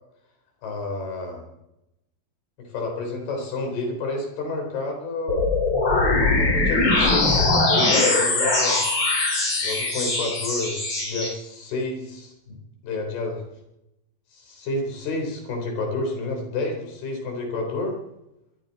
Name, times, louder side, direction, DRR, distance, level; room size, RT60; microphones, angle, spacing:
voice 1, 0.6-1.4 2.6-5.4 6.2-8.8 9.6-10.8 11.0-12.6 12.8-13.4 14.3-18.0, left 3 dB, 85° left, 3 dB, 5.9 m, -29 dB
sound 1, 5.3-11.3, left 2 dB, 40° left, 5.4 m, -21 dB
22.5 x 14.5 x 4.1 m, 0.87 s
omnidirectional pair, 4.4 m